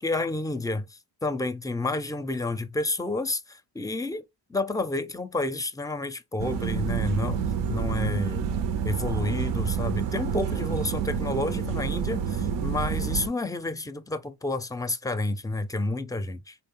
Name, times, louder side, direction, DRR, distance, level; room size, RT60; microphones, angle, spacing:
voice 1, 0.0-4.2 4.5-7.4 7.7-8.4 8.8-16.6, left 2 dB, 10° left, 0.4 m, -30 dB
sound 1, 6.4-13.3, right 7 dB, 90° right, 0.6 m, -28 dB
3.7 x 2.2 x 3.6 m
cardioid pair, 95°, 42 cm